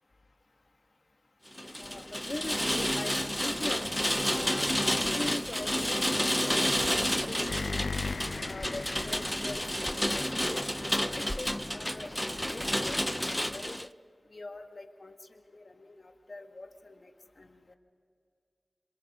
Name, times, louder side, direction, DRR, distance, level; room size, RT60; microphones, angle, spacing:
Rain, 1.5-13.9, equal, 10° left, 0.5 m, -30 dB
voice 1, 1.7-6.7 7.1-8.0 8.4-10.6 11.1-13.8 14.3-17.1 17.4-17.8, left 2 dB, 55° left, 5 dB, 1.7 m, -43 dB
sound 1, 2.0-2.7 7.5-11.1, left 4 dB, 85° left, 0.6 m, -40 dB
28.0 x 27.0 x 3.7 m, 2.4 s
cardioid pair, 40°, 0 cm